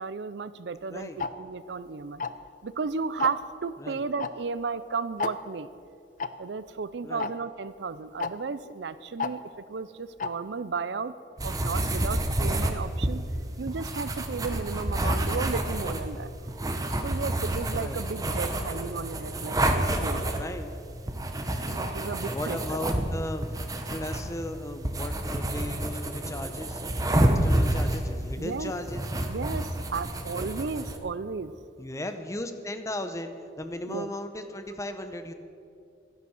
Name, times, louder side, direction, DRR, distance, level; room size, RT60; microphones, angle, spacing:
voice 1, 0.0-2.2 2.6-5.7 6.4-11.1 11.4-13.2 13.6-16.3 17.0-20.2 21.7-22.6 28.4-28.7 29.3-31.5 33.9-34.1, right 4 dB, 70° right, 15 dB, 0.5 m, -34 dB
voice 2, 0.9-1.2 3.8-4.0 7.0-7.3 17.8-18.0 20.3-20.7 22.3-26.8 27.2-29.1 31.8-35.3, left 1 dB, 15° left, 8 dB, 0.8 m, -36 dB
Tick-tock, 1.2-1.3 2.2-2.5 3.2-3.5 4.2-4.3 4.6-4.7 5.2-5.3 6.2-6.3 7.2-7.3 8.2-8.3 9.2-9.3 10.2-10.3, left 5 dB, 45° left, 0.5 m, -30 dB
sound 1, 11.4-31.0, right 1 dB, 20° right, 1.0 m, -29 dB
12.5 x 10.5 x 7.1 m, 2.5 s
head